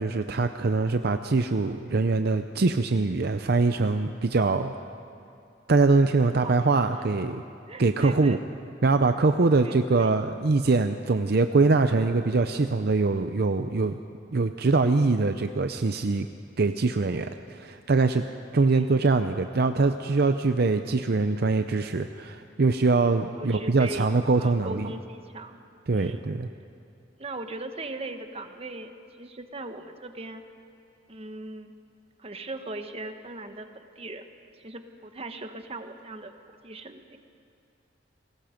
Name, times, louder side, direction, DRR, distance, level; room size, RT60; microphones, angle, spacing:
voice 1, 0.0-4.7 5.7-7.4 7.8-8.4 8.8-14.0 14.3-16.3 16.6-18.2 18.5-24.9 25.9-26.5, right 3 dB, 60° right, 8 dB, 0.6 m, -23 dB
voice 2, 6.2-6.6 6.9-7.1 7.7-8.4 9.5-10.2 18.6-18.9 23.4-24.1 24.4-25.6 25.9-26.2 27.2-28.9 29.2-30.4 31.1-31.7 32.2-34.3 34.6-36.3 36.6-37.2, right 2 dB, 35° right, 7 dB, 1.2 m, -39 dB
29.5 x 20.5 x 5.2 m, 2.5 s
head